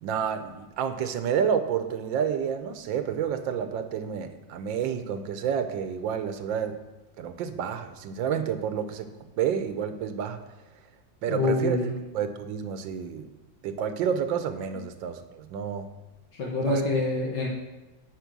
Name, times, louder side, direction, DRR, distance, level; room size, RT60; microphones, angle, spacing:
voice 1, 0.0-6.8 7.2-10.4 11.2-13.3 13.6-15.9 16.6-16.8, right 8 dB, 85° right, 9 dB, 1.5 m, -29 dB
voice 2, 11.3-11.9 16.3-17.5, left 2 dB, 70° left, -2 dB, 1.9 m, -26 dB
9.0 x 5.1 x 6.1 m, 1.1 s
omnidirectional pair, 2.0 m